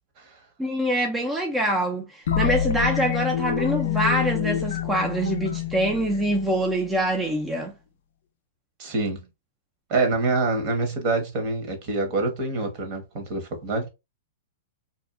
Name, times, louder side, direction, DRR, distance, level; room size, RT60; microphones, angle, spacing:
voice 1, 0.6-7.7, right 1 dB, 10° right, 0.4 m, -25 dB
sound 1, 2.3-7.0, left 9 dB, 75° left, 0.4 m, -27 dB
voice 2, 8.8-9.2 9.9-13.9, right 3 dB, 45° right, 1.0 m, -26 dB
2.6 x 2.3 x 2.4 m
hypercardioid pair, 130°, 0 cm